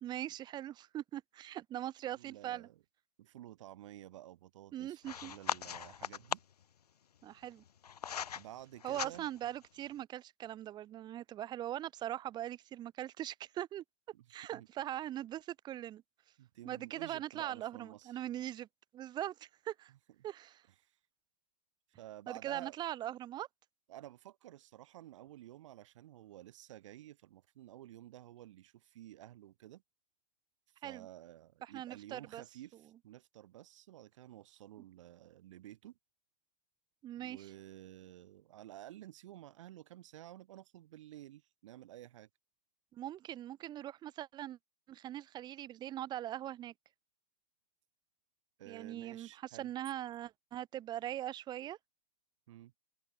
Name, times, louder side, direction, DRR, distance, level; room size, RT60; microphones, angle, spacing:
voice 1, 0.0-2.7 4.7-5.3 7.2-7.6 8.8-13.8 14.3-16.0 16.6-18.7 18.9-19.9 20.2-20.6 22.3-23.5 30.8-31.1 31.7-32.4 37.0-37.5 42.9-44.6 44.9-46.7 48.7-51.8, right 12 dB, 20° right, 2.3 m, -41 dB
voice 2, 2.1-2.8 3.2-6.4 8.3-9.2 14.1-14.3 14.5-14.7 16.4-18.2 20.8-21.0 22.0-22.8 23.9-29.8 30.8-36.0 37.2-42.3 48.6-49.7 52.5-52.7, right 14 dB, 50° right, 3.1 m, -52 dB
sound 1, 5.0-6.6 7.4-8.4 8.8-9.5, left 8 dB, 65° left, 1.5 m, -39 dB
open air
hypercardioid pair, 130°, 21 cm